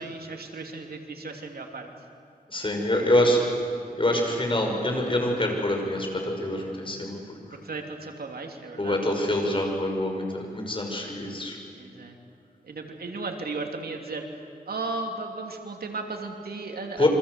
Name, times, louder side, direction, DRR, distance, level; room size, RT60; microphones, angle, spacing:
voice 1, 0.0-1.9 3.2-3.5 7.5-9.0 11.8-12.2 12.6-14.2 14.7-17.1, right 3 dB, 85° right, 3 dB, 3.0 m, -35 dB
voice 2, 2.5-3.4 4.0-7.2 8.8-11.6 17.0-17.1, left 1 dB, 35° left, 2 dB, 6.2 m, -25 dB
28.0 x 25.5 x 8.2 m, 2.3 s
wide cardioid pair, 80°, 15 cm